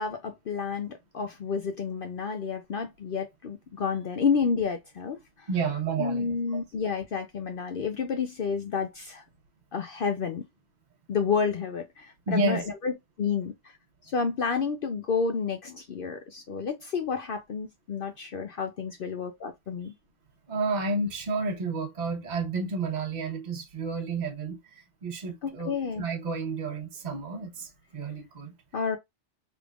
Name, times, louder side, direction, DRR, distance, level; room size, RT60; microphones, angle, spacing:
voice 1, 0.0-5.5 6.0-9.2 9.7-10.4 11.1-12.9 13.2-13.8 14.0-19.9 25.4-26.0 28.7-29.0, left 5 dB, 60° left, 0.7 m, -30 dB
voice 2, 5.5-6.6 12.3-12.6 20.5-28.5, right 3 dB, 40° right, 1.0 m, -31 dB
3.4 x 3.4 x 2.3 m
omnidirectional pair, 1.2 m